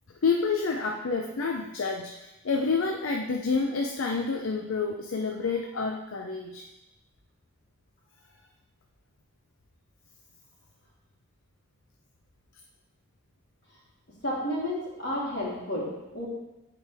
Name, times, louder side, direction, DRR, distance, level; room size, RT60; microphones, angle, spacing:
voice 1, 0.2-6.6, left 4 dB, 75° left, 3 dB, 0.6 m, -28 dB
voice 2, 14.2-16.3, left 1 dB, 55° left, -6 dB, 3.3 m, -31 dB
14.5 x 5.0 x 3.5 m, 0.99 s
head